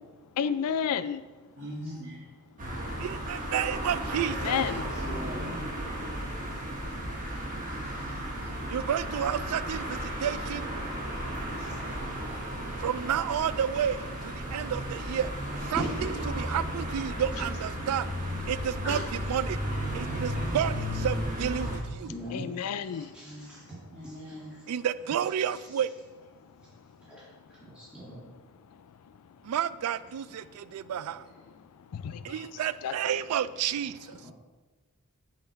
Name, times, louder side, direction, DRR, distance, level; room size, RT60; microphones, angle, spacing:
voice 1, 0.4-1.2 4.4-4.8 22.3-23.1 31.9-32.2 32.8-32.9, left 7 dB, 80° left, 13 dB, 0.4 m, -30 dB
voice 2, 1.6-2.2 5.1-6.1 7.7-8.2 11.1-11.2 18.8-18.9 23.2-23.4 23.9-24.5, equal, 55° right, -10 dB, 1.8 m, -41 dB
sound 1, 2.6-21.8, equal, 35° right, 1.2 m, -34 dB
voice 3, 3.0-4.6 8.7-10.8 12.8-15.3 15.7-18.1 18.5-19.6 19.9-22.1 24.7-25.9 29.4-31.3 32.2-34.2, right 9 dB, 75° right, 17 dB, 0.3 m, -31 dB
voice 4, 4.8-5.5 11.6-12.1 14.5-14.8 15.7-16.1 20.1-20.2 22.0-22.6 22.9-23.8 24.0-24.1 27.1-27.3 27.6-28.2 34.2-34.3, equal, 5° right, -8 dB, 1.9 m, -40 dB
7.7 x 3.8 x 4.5 m, 1.3 s
head